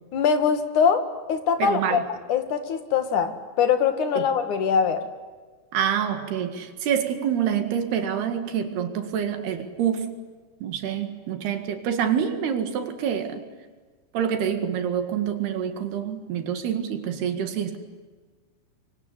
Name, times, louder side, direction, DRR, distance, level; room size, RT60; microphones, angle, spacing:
voice 1, 0.1-1.0 1.3-2.0 2.3-5.0, left 6 dB, 55° left, 8 dB, 2.8 m, -22 dB
voice 2, 1.6-2.0 4.2-4.3 5.7-10.1 10.6-13.4 14.1-17.8, right 8 dB, 65° right, 8 dB, 3.8 m, -26 dB
25.5 x 24.5 x 9.7 m, 1.4 s
omnidirectional pair, 5.2 m